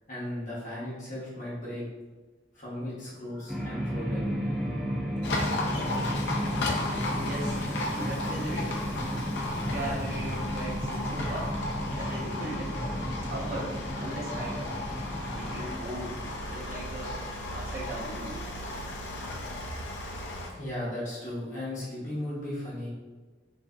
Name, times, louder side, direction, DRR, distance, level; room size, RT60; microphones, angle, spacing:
voice 1, 0.0-1.9 2.5-4.4 20.5-22.9, left 1 dB, 45° left, -8 dB, 0.7 m, -36 dB
sound 1, 3.0-9.2, left 1 dB, 90° right, 0.8 m, -48 dB
sound 2, 3.5-15.7, equal, ahead, 0.4 m, -33 dB
Livestock farm animals working animals, 5.2-20.5, left 2 dB, 75° left, 0.4 m, -34 dB
voice 2, 6.9-7.6 7.9-8.8 9.7-11.6 12.0-13.0 13.3-14.8 15.3-17.3 17.5-18.4, right 1 dB, 50° right, -5 dB, 0.7 m, -38 dB
2.5 x 2.5 x 2.2 m, 1.3 s
head